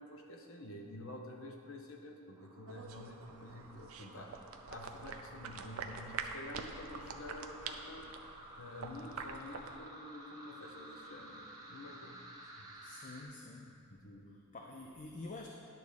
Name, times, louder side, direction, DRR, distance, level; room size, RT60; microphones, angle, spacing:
voice 1, 0.0-12.2 12.5-12.7 13.9-14.5, left 1 dB, 65° left, 2 dB, 0.9 m, -49 dB
sound 1, 2.4-13.2, right 1 dB, 15° right, 0.9 m, -53 dB
sound 2, 2.7-9.8, right 5 dB, 70° right, 0.5 m, -46 dB
voice 2, 12.8-13.8 14.5-15.5, left 2 dB, 35° left, 1 dB, 0.5 m, -47 dB
10.5 x 3.6 x 6.4 m, 2.5 s
head